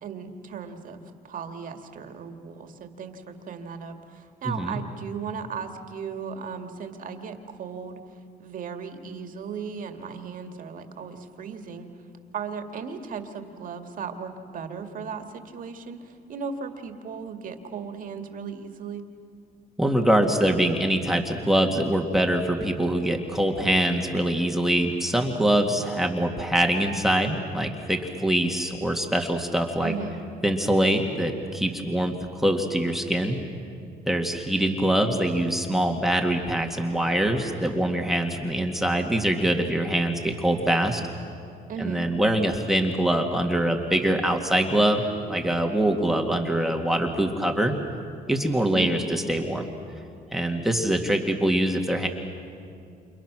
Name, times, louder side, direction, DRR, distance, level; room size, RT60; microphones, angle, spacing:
voice 1, 0.0-8.0 8.4-11.9 12.3-19.0 29.8-30.2 41.7-42.0 48.7-48.9, right 6 dB, 55° right, 6 dB, 2.2 m, -36 dB
voice 2, 4.5-4.8 19.8-29.9 30.4-33.4 34.1-41.0 41.8-47.8 48.3-49.7 50.3-52.1, right 1 dB, ahead, 3 dB, 2.0 m, -24 dB
29.0 x 28.5 x 6.2 m, 2.4 s
cardioid pair, 110°, 17 cm